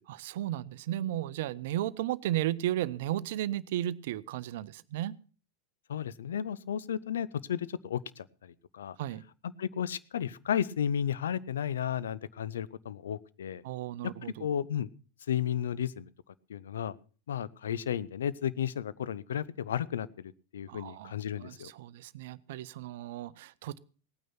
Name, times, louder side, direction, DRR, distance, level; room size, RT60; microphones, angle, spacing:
voice 1, 0.1-5.1 9.0-9.2 13.6-14.5 20.7-21.1 21.4-23.8, right 13 dB, 55° right, 18 dB, 0.6 m, -34 dB
voice 2, 5.9-9.0 9.6-13.6 14.4-14.9 15.3-16.1 16.5-16.9 17.3-21.7, left 9 dB, 65° left, 18 dB, 0.6 m, -33 dB
17.5 x 9.3 x 5.9 m, 0.38 s
figure-of-eight pair, 90°, 0 cm